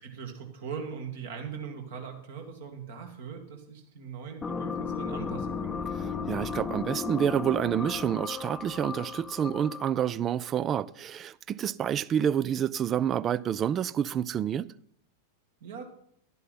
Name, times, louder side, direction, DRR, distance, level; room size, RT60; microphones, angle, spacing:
voice 1, 0.0-5.7 15.6-15.8, right 6 dB, 55° right, 2.1 m, -40 dB
sound 1, 4.4-10.0, left 5 dB, 15° left, 0.7 m, -35 dB
voice 2, 5.9-14.7, right 9 dB, 25° right, 0.4 m, -28 dB
11.5 x 11.0 x 4.2 m
figure-of-eight pair, 90°, 0 cm